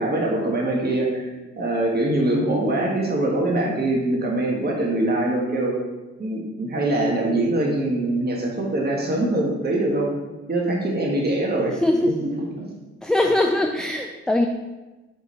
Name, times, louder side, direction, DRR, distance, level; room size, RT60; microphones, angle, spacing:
voice 1, 0.0-5.7 6.2-10.1 10.5-11.8 12.2-12.7, right 1 dB, 30° right, -1 dB, 1.4 m, -23 dB
voice 2, 11.8-12.1 13.0-14.5, left 1 dB, ahead, 4 dB, 0.4 m, -21 dB
5.2 x 4.1 x 4.4 m, 1.1 s
hypercardioid pair, 45°, 31 cm